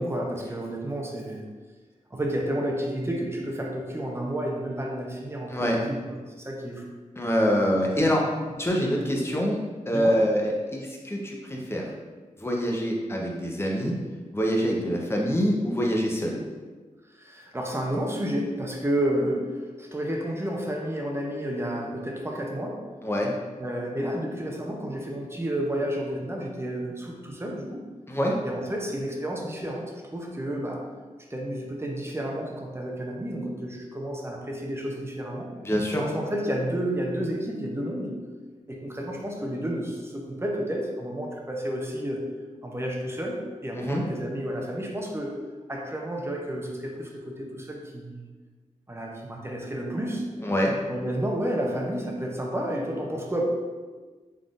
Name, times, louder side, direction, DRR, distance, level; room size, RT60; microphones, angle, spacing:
voice 1, 0.0-1.5 2.1-6.8 7.9-8.0 9.9-10.3 17.1-22.9 23.6-27.9 28.4-30.9 31.3-35.5 36.0-38.3 38.7-42.3 42.6-45.4 45.7-48.3 48.9-50.3 50.9-53.5, right 1 dB, 20° right, 0 dB, 0.6 m, -31 dB
voice 2, 7.2-8.3 8.6-11.9 12.4-13.9 14.3-16.4 23.0-23.3 28.1-28.4 35.6-36.0 43.7-44.0 50.4-50.7, equal, 20° left, -1 dB, 0.7 m, -25 dB
3.9 x 3.6 x 2.5 m, 1.4 s
wide cardioid pair, 70°, 13 cm